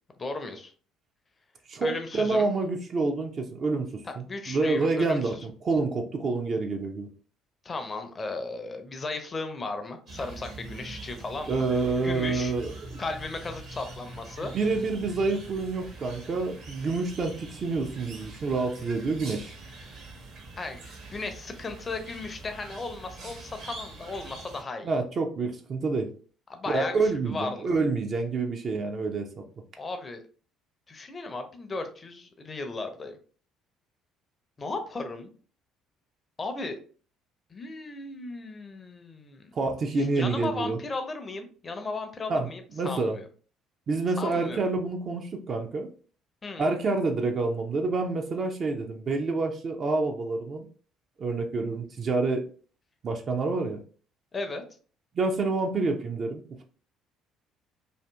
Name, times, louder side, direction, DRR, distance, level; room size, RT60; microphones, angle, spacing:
voice 1, 0.2-0.7 1.8-2.5 4.0-5.5 7.6-11.5 12.0-12.5 13.0-14.5 20.6-25.0 26.5-27.7 29.8-30.2 30.9-33.2 34.6-35.3 36.4-36.8 37.5-39.5 40.0-43.3 44.2-44.6 46.4-46.8 54.3-54.6, left 3 dB, 30° left, 6 dB, 0.5 m, -36 dB
voice 2, 1.7-7.1 11.5-12.7 14.4-19.5 24.8-26.1 26.7-29.3 39.6-40.8 42.3-42.5 42.8-43.2 43.9-45.9 46.6-50.7 51.2-52.4 53.0-53.8 55.1-56.6, right 3 dB, 45° right, 3 dB, 0.4 m, -28 dB
sound 1, 10.1-24.6, right 3 dB, 60° right, 0.8 m, -44 dB
2.6 x 2.5 x 2.2 m, 0.40 s
figure-of-eight pair, 50°, 0 cm